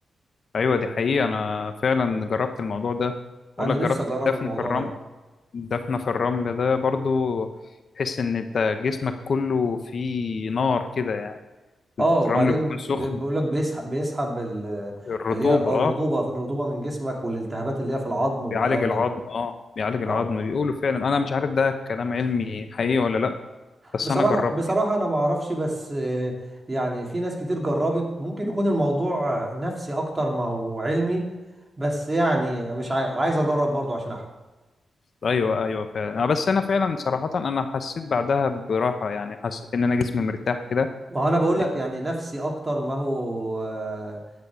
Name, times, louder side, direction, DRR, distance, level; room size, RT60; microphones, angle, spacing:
voice 1, 0.5-3.1 3.6-4.0 4.3-4.9 5.5-7.5 8.0-11.4 12.3-12.6 12.9-13.2 15.1-15.9 18.5-23.4 23.9-24.5 35.2-40.9, left 5 dB, 60° left, 8 dB, 0.8 m, -25 dB
voice 2, 3.6-4.8 12.0-15.0 15.3-19.0 20.1-20.2 23.8-26.3 26.7-31.2 31.8-34.2 41.1-44.2, right 1 dB, 25° right, 0 dB, 2.6 m, -26 dB
10.5 x 8.5 x 4.9 m, 1.2 s
cardioid pair, 80°, 0 cm